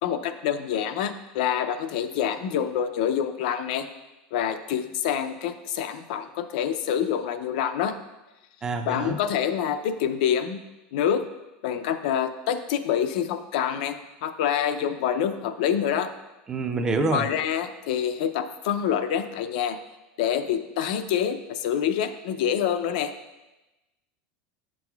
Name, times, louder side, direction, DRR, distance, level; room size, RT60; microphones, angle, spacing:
voice 1, 0.0-3.8 4.3-7.9 8.8-10.6 10.9-11.2 11.6-13.9 14.2-16.1 17.1-19.8 20.2-23.1, left 9 dB, 70° left, 9 dB, 0.5 m, -26 dB
voice 2, 8.6-9.2 16.5-17.3, right 3 dB, 15° right, 6 dB, 0.4 m, -26 dB
8.5 x 6.1 x 2.3 m, 1.0 s
supercardioid pair, 160°, 5 cm